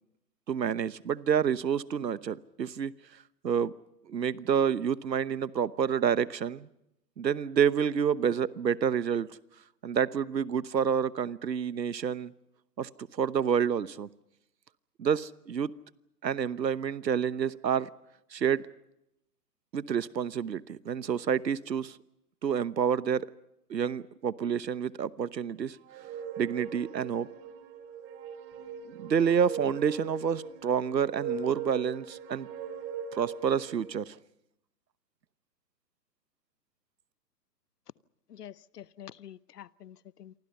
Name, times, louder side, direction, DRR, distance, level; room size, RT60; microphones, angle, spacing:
voice 1, 0.5-2.9 3.4-3.7 4.1-6.7 7.2-9.4 9.8-12.3 12.8-14.1 15.0-15.7 16.2-17.9 18.3-18.6 19.7-22.0 22.4-23.3 23.7-25.8 26.4-27.3 28.9-32.5 33.1-34.2, right 7 dB, 85° right, 18 dB, 1.1 m, -28 dB
sound 1, 25.8-34.0, right 6 dB, 25° right, 3.2 m, -40 dB
voice 2, 38.3-40.3, left 10 dB, 70° left, 20 dB, 1.0 m, -47 dB
28.5 x 24.5 x 5.5 m, 0.83 s
hypercardioid pair, 130°, 49 cm